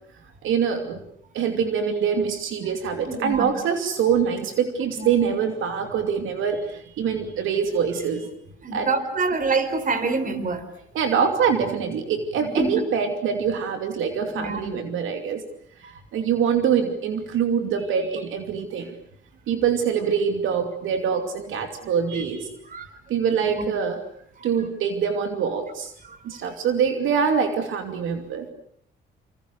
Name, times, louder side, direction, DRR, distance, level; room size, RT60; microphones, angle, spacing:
voice 1, 0.4-1.0 1.3-8.3 8.7-8.9 10.9-15.4 15.8-18.9 19.5-22.6 23.1-24.0 24.4-25.9 26.2-28.5, right 7 dB, 80° right, 7 dB, 2.7 m, -24 dB
voice 2, 3.1-3.5 5.0-5.1 8.6-10.6 12.6-12.7 14.4-14.8 22.7-22.9 26.1-26.2, right 3 dB, 45° right, 11 dB, 4.3 m, -25 dB
28.0 x 26.5 x 6.7 m, 0.66 s
cardioid pair, 90°, 20 cm